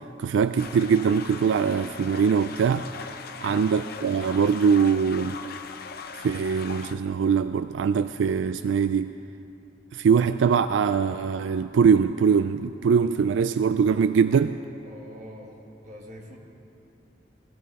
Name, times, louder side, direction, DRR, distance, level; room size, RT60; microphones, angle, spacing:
voice 1, 0.2-2.9 3.4-5.4 6.2-9.1 9.9-14.5, right 6 dB, 80° right, 12 dB, 0.3 m, -22 dB
sound 1, 0.6-7.0, left 5 dB, 55° left, 0.7 m, -40 dB
voice 2, 3.3-3.7 14.8-15.6 15.8-16.4, left 1 dB, 40° right, -2 dB, 2.1 m, -44 dB
20.5 x 14.5 x 4.1 m, 2.9 s
head